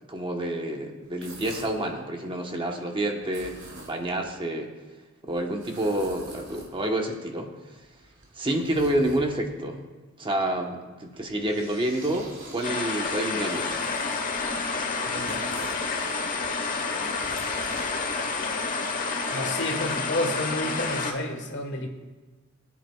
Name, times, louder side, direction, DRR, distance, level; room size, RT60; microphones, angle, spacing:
voice 1, 0.1-3.6 3.9-4.7 5.2-7.5 8.3-9.9 10.2-13.8, right 1 dB, 25° right, 2 dB, 1.0 m, -28 dB
sound 1, 1.0-1.9 3.2-4.2 5.3-7.0 7.8-9.6 11.0-15.9 16.9-18.5, right 2 dB, 60° right, 2.9 m, -46 dB
sound 2, 12.6-21.1, left 4 dB, 40° left, 1.1 m, -29 dB
voice 2, 15.0-15.4 19.3-21.9, left 1 dB, 55° left, 3 dB, 1.4 m, -30 dB
21.0 x 9.3 x 2.3 m, 1.3 s
head